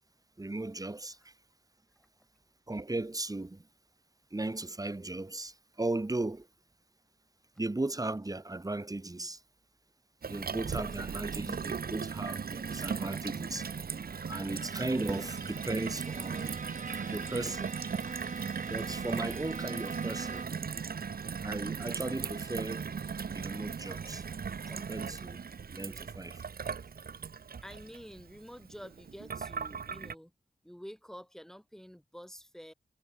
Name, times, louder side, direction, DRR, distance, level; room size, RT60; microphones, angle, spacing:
voice 1, 0.4-1.2 2.7-3.6 4.3-6.5 7.6-9.4 10.3-13.7 14.3-16.6 17.1-17.7 18.7-20.5 21.4-22.8 23.3-24.2 24.7-25.4 25.7-26.4, right 2 dB, 20° right, 2.3 m, -36 dB
Gurgling / Water tap faucet / Sink (filling or washing), 10.2-30.1, right 6 dB, 70° right, 1.3 m, -38 dB
Bowed string instrument, 14.3-20.7, right 4 dB, 50° right, 2.2 m, -44 dB
voice 2, 27.6-30.3 30.6-32.7, equal, 5° left, 5.8 m, -48 dB
wide cardioid pair, 95°, 16 cm